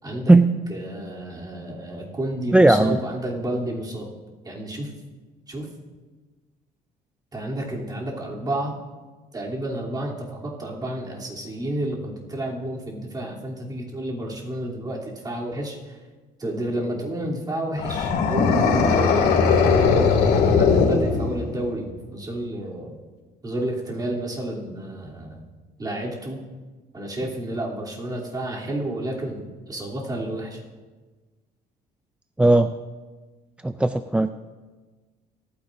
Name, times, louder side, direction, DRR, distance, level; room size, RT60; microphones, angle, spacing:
voice 1, 0.0-0.3 0.7-4.1 4.4-4.9 5.5-5.7 7.3-8.7 9.3-16.0 16.4-22.9 23.4-25.4 25.8-26.4 26.9-30.6, right 1 dB, 25° right, -4 dB, 3.0 m, -31 dB
voice 2, 2.5-3.0 32.4-32.7 33.6-34.3, right 2 dB, 5° right, 10 dB, 0.3 m, -16 dB
sound 1, 17.8-21.6, left 5 dB, 80° left, 2.2 m, -19 dB
26.0 x 9.7 x 2.6 m, 1.3 s
cardioid pair, 110°, 17 cm